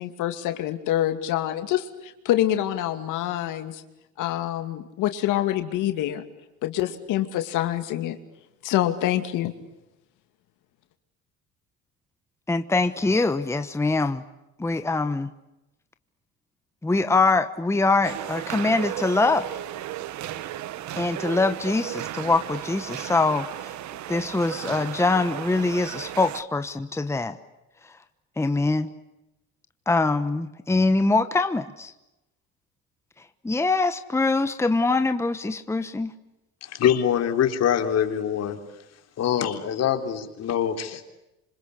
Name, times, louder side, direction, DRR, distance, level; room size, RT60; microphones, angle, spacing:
voice 1, 0.0-3.8 4.2-6.2 6.6-8.2 8.6-9.5, left 13 dB, 80° left, 8 dB, 2.6 m, -26 dB
voice 2, 12.5-14.2 14.6-15.3 16.8-19.5 21.0-23.8 24.1-27.4 28.4-28.9 29.9-31.9 33.4-36.1, left 3 dB, 10° left, 9 dB, 1.2 m, -23 dB
sound 1, 18.0-26.4, right 13 dB, 65° right, 1.3 m, -34 dB
voice 3, 36.6-38.6 39.2-41.0, left 9 dB, 55° left, 6 dB, 3.7 m, -24 dB
27.5 x 26.0 x 8.4 m, 0.92 s
cardioid pair, 125°, 31 cm